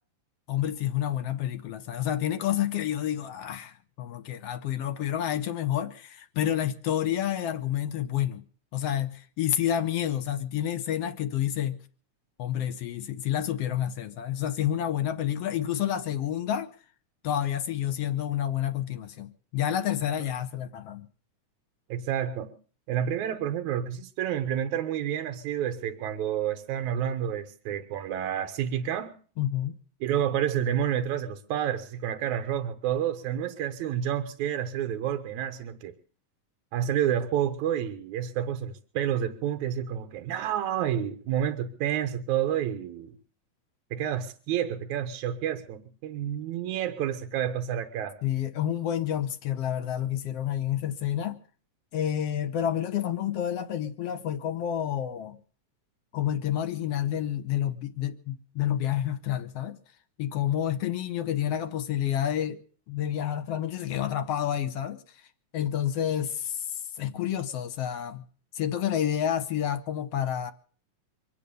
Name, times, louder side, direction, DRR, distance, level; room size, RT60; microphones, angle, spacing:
voice 1, 0.5-8.4 8.7-11.8 12.4-16.7 17.2-21.1 29.4-29.7 48.2-51.4 51.9-55.4 56.1-59.8 60.2-62.6 62.9-65.0 65.5-68.2 68.5-70.5, left 10 dB, 65° left, 1.7 m, -29 dB
voice 2, 21.9-22.5 22.9-29.1 30.0-35.9 36.7-43.1 43.9-48.2, right 10 dB, 75° right, 2.2 m, -29 dB
25.0 x 8.5 x 6.8 m
omnidirectional pair, 3.5 m